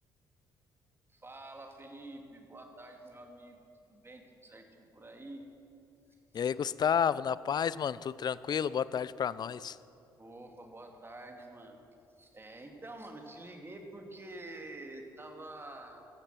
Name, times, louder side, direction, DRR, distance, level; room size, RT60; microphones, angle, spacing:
voice 1, 1.1-3.6 3.9-4.7 4.9-5.4 6.3-6.5 10.2-11.8 12.2-16.0, right 2 dB, 20° right, 3 dB, 2.6 m, -48 dB
voice 2, 6.3-9.8, left 8 dB, 40° left, 19 dB, 0.5 m, -31 dB
15.0 x 14.5 x 5.9 m, 2.7 s
figure-of-eight pair, 45°, 11 cm